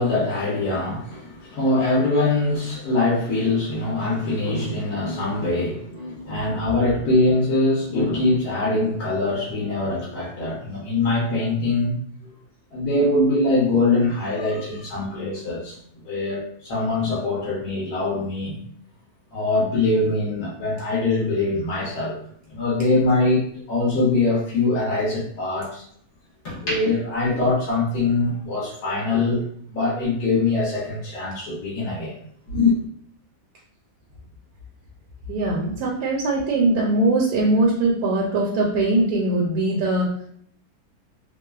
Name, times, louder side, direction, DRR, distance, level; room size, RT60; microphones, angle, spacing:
voice 1, 0.0-12.0 12.7-15.8 16.0-18.6 19.3-22.2 22.5-25.8 26.6-29.4 29.7-32.1 32.5-32.7, left 2 dB, 65° left, -6 dB, 1.2 m, -23 dB
sound 1, 21.6-23.9 24.3-25.8 26.2-28.3 28.6-28.9, equal, 45° left, 0.6 m, -36 dB
voice 2, 35.3-40.1, right 2 dB, 75° right, -3 dB, 1.1 m, -21 dB
3.0 x 2.0 x 2.3 m, 0.63 s
omnidirectional pair, 1.8 m